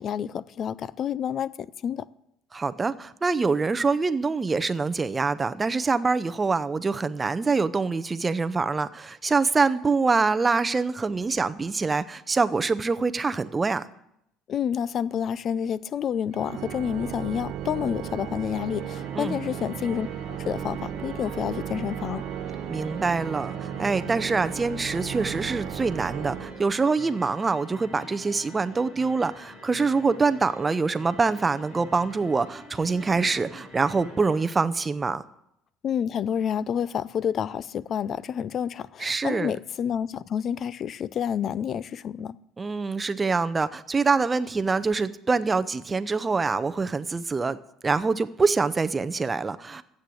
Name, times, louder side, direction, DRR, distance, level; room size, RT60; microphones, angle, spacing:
voice 1, 0.0-2.1 14.5-22.2 35.8-42.4, left 8 dB, 45° left, 0.4 m, -29 dB
voice 2, 2.5-13.8 19.1-19.4 22.7-35.2 39.0-39.5 42.6-47.6 47.8-49.8, right 4 dB, 20° right, 0.6 m, -25 dB
Organ, 16.3-27.1, right 10 dB, 75° right, 0.9 m, -35 dB
sound 1, 18.5-34.5, left 1 dB, 60° left, 6.2 m, -46 dB
13.0 x 8.5 x 7.8 m
cardioid pair, 125°, 0 cm